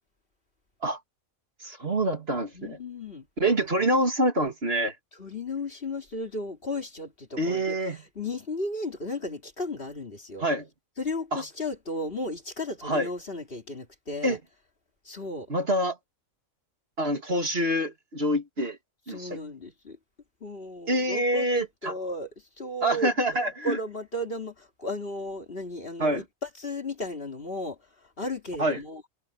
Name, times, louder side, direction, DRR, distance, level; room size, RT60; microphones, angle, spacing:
voice 1, 1.6-2.8 3.4-5.0 7.4-8.0 10.4-10.7 11.3-11.4 12.8-13.1 14.2-14.4 15.5-16.0 17.0-18.8 19.1-19.4 20.9-21.9 22.8-23.8 26.0-26.2 28.6-28.8, right 1 dB, 45° right, 2.6 m, -26 dB
voice 2, 2.5-3.3 5.2-7.8 8.2-10.5 11.0-14.4 15.0-15.5 19.1-20.0 20.4-22.3 22.6-23.1 23.4-27.8 28.2-29.0, left 1 dB, 45° left, 2.9 m, -34 dB
omnidirectional pair, 1.4 m